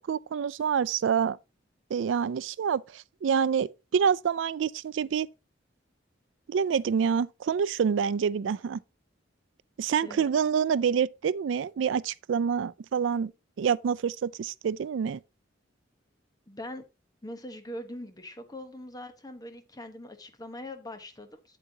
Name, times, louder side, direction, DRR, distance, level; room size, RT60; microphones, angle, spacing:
voice 1, 0.0-1.4 1.9-5.3 6.5-8.8 9.8-13.3 13.6-15.2, right 7 dB, 80° right, 0.4 m, -27 dB
voice 2, 16.5-16.8 17.2-21.6, left 1 dB, 20° left, 1.1 m, -42 dB
8.4 x 8.1 x 2.8 m
head